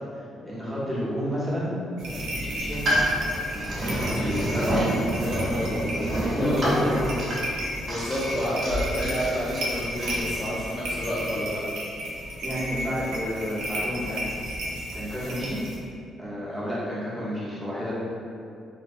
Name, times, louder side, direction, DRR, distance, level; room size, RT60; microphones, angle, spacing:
voice 1, 0.1-1.7 2.4-2.8 3.5-4.8 6.2-7.1 12.4-14.3 14.9-15.6 16.2-17.9, equal, 10° right, -9 dB, 0.8 m, -30 dB
sound 1, 2.0-15.8, equal, 85° right, 0.4 m, -33 dB
voice 2, 2.1-2.7 3.9-4.9 5.2-6.0 6.4-6.9 7.8-11.7 13.0-13.1 16.5-16.6 16.9-17.0, left 1 dB, 25° left, -10 dB, 0.5 m, -31 dB
sound 2, 2.6-10.2, equal, 45° right, 0.8 m, -29 dB
2.2 x 2.2 x 2.5 m, 2.5 s
cardioid pair, 90°, 0 cm